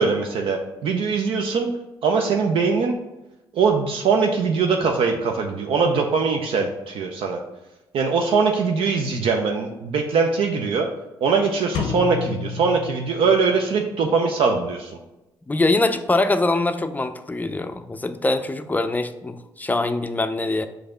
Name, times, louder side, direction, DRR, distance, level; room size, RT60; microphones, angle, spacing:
voice 1, 0.0-1.7 2.0-3.0 3.5-7.4 7.9-10.9 11.2-15.0, right 5 dB, 65° right, 3 dB, 0.5 m, -21 dB
sound 1, 11.7-13.7, left 5 dB, 75° left, 0.6 m, -30 dB
voice 2, 15.5-20.7, left 2 dB, 15° left, 9 dB, 0.4 m, -23 dB
4.7 x 2.6 x 4.3 m, 0.97 s
hypercardioid pair, 50°, 10 cm